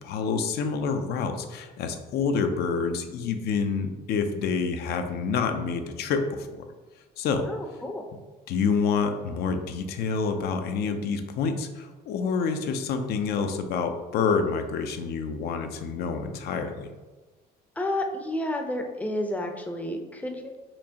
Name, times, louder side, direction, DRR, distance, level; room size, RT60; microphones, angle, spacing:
voice 1, 0.0-6.6 7.2-7.5 8.5-16.9, left 5 dB, 70° left, 7 dB, 0.5 m, -28 dB
voice 2, 7.5-8.0 17.8-20.6, left 1 dB, 10° left, 3 dB, 0.5 m, -31 dB
4.3 x 2.7 x 2.8 m, 1.3 s
cardioid pair, 110°, 17 cm